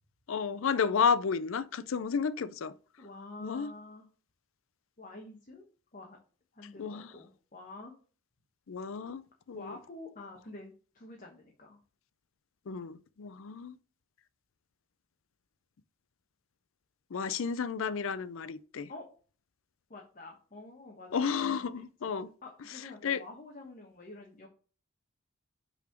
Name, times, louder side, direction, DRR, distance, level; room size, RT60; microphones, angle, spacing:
voice 1, 0.3-2.7 3.4-3.7 6.8-7.1 8.7-9.8 12.7-13.8 17.1-18.9 21.1-22.3 23.0-23.2, left 6 dB, 65° left, 0.4 m, -32 dB
voice 2, 3.0-4.1 5.0-5.7 5.9-6.2 6.5-7.9 9.5-11.8 18.9-19.0 19.9-22.1 22.4-24.5, left 2 dB, 40° left, 1.1 m, -48 dB
5.7 x 4.1 x 5.8 m
head